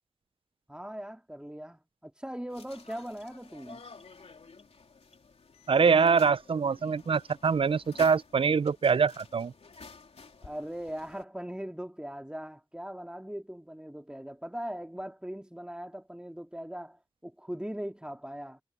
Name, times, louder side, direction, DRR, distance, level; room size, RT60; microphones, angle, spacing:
voice 1, 0.7-3.8 10.4-18.6, equal, 10° right, 2.4 m, -40 dB
sound 1, 2.5-11.2, left 4 dB, 90° left, 3.4 m, -51 dB
voice 2, 5.7-9.5, right 5 dB, 60° right, 0.4 m, -24 dB
cardioid pair, 45°, 10 cm